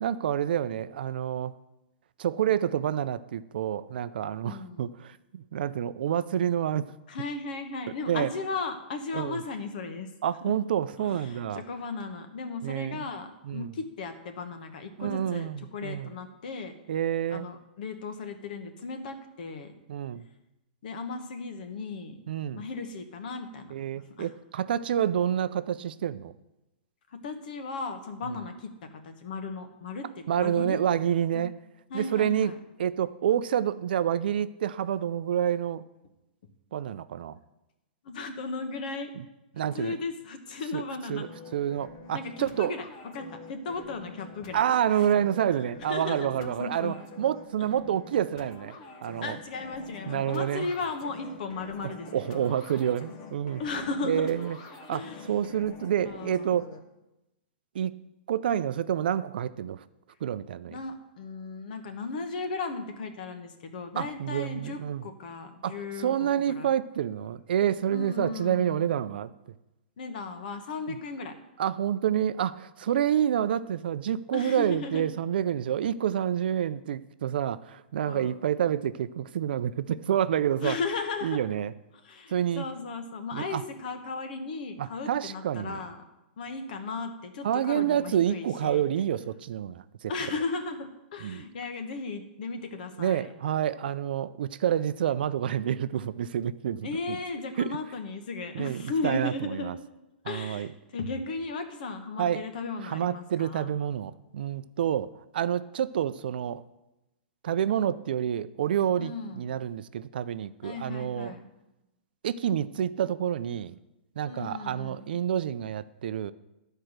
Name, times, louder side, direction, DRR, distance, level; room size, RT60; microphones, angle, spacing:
voice 1, 0.0-1.5 2.2-6.8 8.1-8.3 9.1-9.4 10.2-11.6 12.6-13.1 13.4-13.7 15.0-16.1 16.9-17.5 19.9-20.2 22.3-22.6 23.7-26.3 30.3-31.5 31.9-32.5 32.8-35.8 36.7-37.4 39.2-39.3 39.5-39.9 40.7-40.8 41.1-41.3 41.5-42.8 44.5-48.8 49.0-49.4 50.1-50.7 51.8-53.6 54.0-54.6 54.9-56.7 57.7-58.0 58.3-59.8 60.2-60.8 64.0-65.0 65.6-69.3 70.9-71.0 71.6-80.8 81.2-81.7 82.3-82.7 83.3-83.6 84.8-85.8 87.4-90.1 91.2-91.4 93.0-97.2 97.6-97.8 98.5-99.7 100.3-100.7 102.2-102.4 102.8-106.6 107.4-111.3 112.2-113.8 114.2-116.3, right 10 dB, 65° right, 14 dB, 0.4 m, -28 dB
voice 2, 4.4-4.9 7.1-10.1 10.4-10.5 11.0-16.7 17.3-19.7 20.8-22.2 22.5-24.3 27.1-28.7 29.0-30.8 31.3-31.5 31.9-32.6 38.0-39.1 39.7-41.3 42.1-42.8 43.1-44.6 44.9-45.1 45.9-46.9 49.2-52.5 53.6-54.3 54.9-55.4 56.0-56.5 60.7-66.7 67.9-69.0 70.0-71.3 74.3-75.1 78.1-78.3 80.6-81.4 82.0-86.0 86.4-88.8 90.1-93.3 96.8-99.8 100.2-103.7 109.0-109.5 110.6-111.4 114.2-115.0, left 3 dB, 50° left, 7 dB, 1.1 m, -36 dB
sound 1, 41.2-56.8, left 3 dB, 35° left, 0.9 m, -47 dB
11.5 x 4.5 x 6.5 m, 0.98 s
hypercardioid pair, 170°, 6 cm